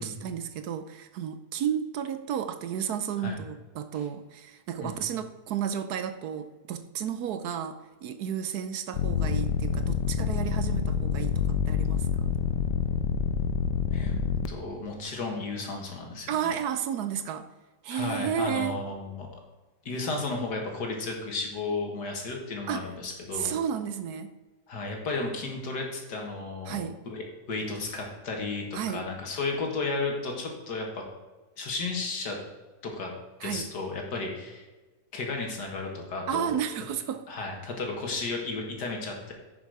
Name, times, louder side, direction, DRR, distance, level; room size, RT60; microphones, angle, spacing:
voice 1, 0.0-12.4 16.3-17.5 17.8-18.8 22.7-22.9 23.3-24.3 26.7-27.0 28.7-29.1 33.4-33.7 36.3-37.3, right 8 dB, 70° right, 10 dB, 1.1 m, -32 dB
sound 1, 8.9-14.5, left 7 dB, 85° left, 1.3 m, -27 dB
voice 2, 13.9-16.5 17.9-19.3 19.9-23.5 24.7-31.0 31.6-32.4 32.8-33.1 33.4-34.7 35.1-36.5 37.3-39.3, left 3 dB, 70° left, 1 dB, 2.3 m, -33 dB
10.5 x 6.3 x 4.9 m, 1.2 s
omnidirectional pair, 1.8 m